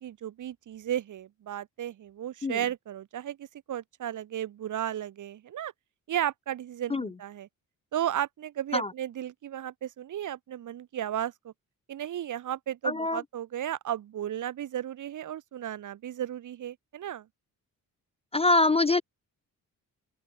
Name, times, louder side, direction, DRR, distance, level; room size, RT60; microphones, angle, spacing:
voice 1, 0.0-5.7 6.1-7.5 7.9-11.5 11.9-17.3, right 11 dB, 60° right, 1.0 m, -34 dB
voice 2, 12.8-13.2 18.3-19.0, left 2 dB, 20° left, 0.4 m, -24 dB
open air
wide cardioid pair, 155°, 35 cm